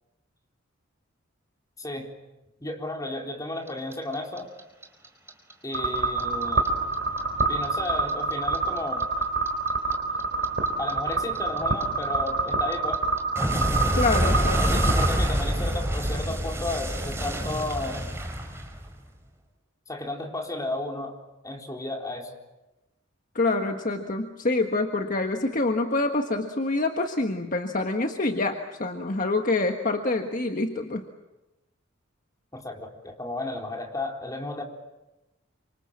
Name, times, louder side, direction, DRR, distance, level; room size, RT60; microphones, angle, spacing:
voice 1, 1.8-2.1 2.6-4.5 5.6-6.6 7.5-9.0 10.8-13.0 14.2-14.3 14.6-18.1 19.9-21.1 21.4-22.3 32.5-34.6, left 2 dB, 20° left, 1 dB, 3.9 m, -33 dB
Clock, 3.7-6.7 6.9-9.9 10.2-19.1, equal, 15° right, 5.0 m, -27 dB
sound 1, 5.7-15.1, right 3 dB, 60° right, 3.5 m, -27 dB
voice 2, 13.9-14.8 23.3-31.0, left 2 dB, 45° left, 4 dB, 1.5 m, -26 dB
28.0 x 26.5 x 7.4 m, 1.0 s
head